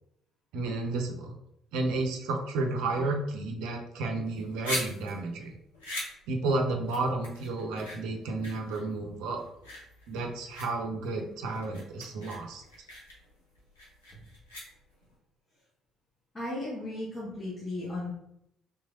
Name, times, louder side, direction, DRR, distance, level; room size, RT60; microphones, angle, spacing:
voice 1, 0.5-1.3 1.7-5.5 6.3-9.4 10.1-12.6, right 2 dB, 65° right, 3 dB, 0.5 m, -32 dB
sound 1, 4.2-15.1, left 1 dB, 80° left, 0.8 m, -41 dB
voice 2, 16.3-18.1, left 2 dB, 25° left, -5 dB, 1.1 m, -35 dB
3.6 x 3.0 x 2.6 m, 0.78 s
figure-of-eight pair, 45°, 0 cm